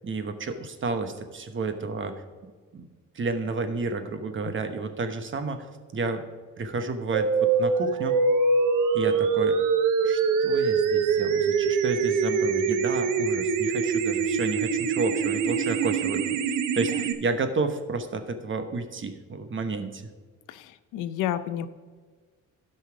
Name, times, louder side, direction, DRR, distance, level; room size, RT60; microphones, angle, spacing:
voice 1, 0.0-2.9 3.1-6.2 6.6-8.1 8.9-9.6 10.0-16.4 16.7-20.1, right 3 dB, 40° right, 8 dB, 1.1 m, -31 dB
sound 1, 7.1-17.1, right 5 dB, 90° right, 0.8 m, -24 dB
voice 2, 20.5-21.7, left 11 dB, 90° left, 12 dB, 0.6 m, -30 dB
12.0 x 5.5 x 5.0 m, 1.4 s
cardioid pair, 90°, 30 cm